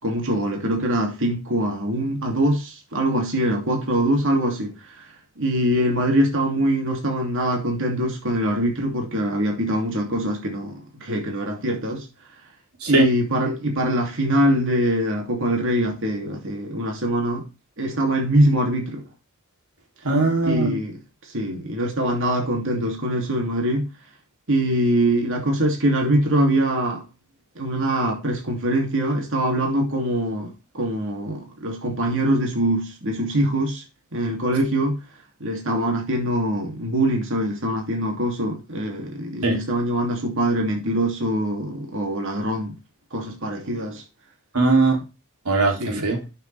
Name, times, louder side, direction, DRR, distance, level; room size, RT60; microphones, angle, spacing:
voice 1, 0.0-4.7 5.4-12.0 12.9-17.4 17.8-19.0 20.4-21.0 21.3-23.9 24.5-27.0 27.6-33.8 34.1-35.0 35.4-42.8 43.1-44.0 45.8-46.0, right 1 dB, 60° right, 2.8 m, -23 dB
voice 2, 20.0-20.7 39.4-39.6 44.5-45.0 45.5-46.2, right 3 dB, 90° right, 3.2 m, -19 dB
11.0 x 7.0 x 3.5 m
head